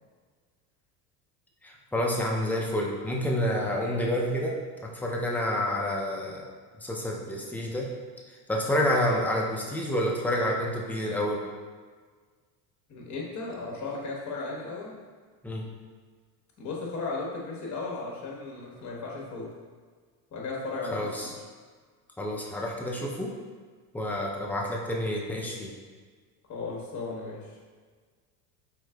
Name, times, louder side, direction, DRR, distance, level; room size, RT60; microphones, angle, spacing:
voice 1, 1.6-6.4 6.8-7.9 8.3-11.5 15.4-15.7 20.9-21.3 22.2-23.3 23.9-25.7, left 1 dB, 5° left, -2 dB, 0.5 m, -29 dB
voice 2, 12.9-14.9 16.6-19.5 20.3-20.9 21.2-21.3 26.5-27.5, left 3 dB, 35° left, -3 dB, 1.3 m, -35 dB
4.5 x 3.8 x 2.3 m, 1.5 s
hypercardioid pair, 90°, 49 cm